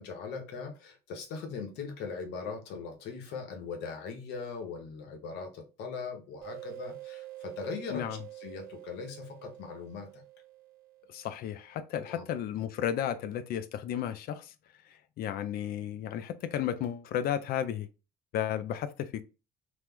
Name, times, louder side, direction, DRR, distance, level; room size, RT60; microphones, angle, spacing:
voice 1, 0.0-10.2 12.0-12.3, left 5 dB, 85° left, 0.9 m, -40 dB
sound 1, 6.4-11.7, right 16 dB, 80° right, 0.5 m, -47 dB
voice 2, 7.9-8.2 11.1-14.5 14.8-17.9 18.3-19.2, left 10 dB, 65° left, 0.4 m, -33 dB
3.0 x 2.0 x 3.4 m
cardioid pair, 110°, 17 cm